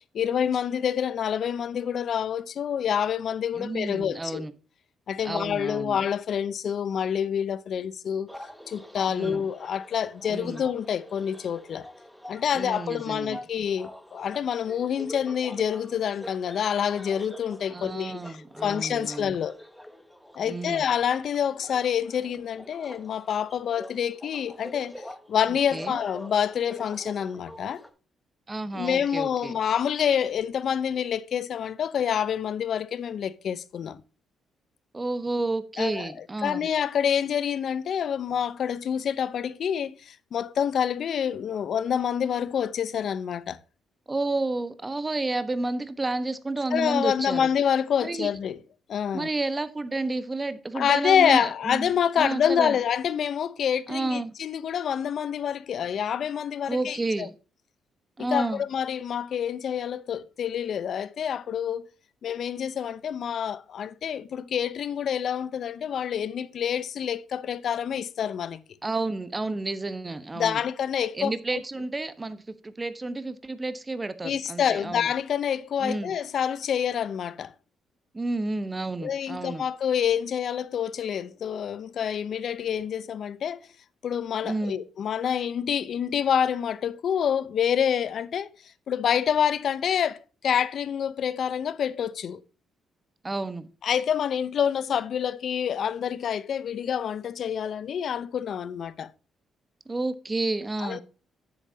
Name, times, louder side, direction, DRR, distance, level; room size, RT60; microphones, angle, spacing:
voice 1, 0.0-4.5 5.1-8.3 8.7-11.9 12.3-19.6 20.4-25.0 25.3-27.8 28.7-34.0 35.8-36.1 36.4-43.6 46.7-48.6 48.9-49.3 50.7-57.3 58.2-61.9 62.2-68.6 70.4-71.3 74.2-77.5 79.0-83.6 84.0-88.5 88.9-90.2 90.4-92.4 93.8-99.1 100.8-101.0, left 8 dB, 60° left, 0.7 m, -27 dB
voice 2, 3.5-4.5 5.2-6.0 9.1-9.4 10.3-10.6 12.5-13.4 17.7-19.4 20.4-20.9 25.7-26.0 28.5-29.5 34.9-36.7 44.1-47.5 48.0-48.3 49.1-51.9 52.1-52.8 53.9-54.3 56.7-57.3 58.2-58.6 68.8-70.6 71.1-75.1 75.8-76.2 78.1-79.6 84.4-84.8 93.2-93.7 99.9-101.0, right 2 dB, 20° right, 1.1 m, -31 dB
sound 1, 8.3-27.9, left 1 dB, 5° left, 1.4 m, -45 dB
10.0 x 8.1 x 2.8 m
cardioid pair, 90°, 0 cm